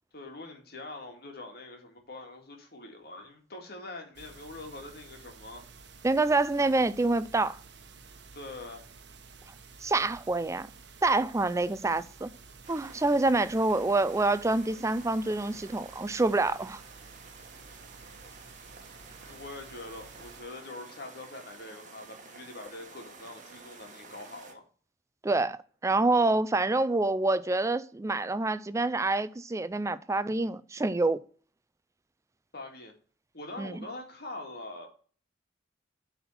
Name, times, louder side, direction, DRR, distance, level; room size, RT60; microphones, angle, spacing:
voice 1, 0.1-5.6 8.3-8.9 19.2-24.6 32.5-32.9 33.3-34.9, left 2 dB, 60° left, 2.2 m, -44 dB
sound 1, 4.1-20.4, right 4 dB, 65° right, 1.1 m, -52 dB
voice 2, 6.0-7.6 9.8-10.7 11.0-12.3 12.7-16.8 25.2-31.2 33.6-33.7, right 2 dB, 15° right, 0.4 m, -27 dB
sound 2, 12.6-24.5, right 4 dB, 45° right, 1.5 m, -51 dB
8.0 x 4.3 x 5.6 m
head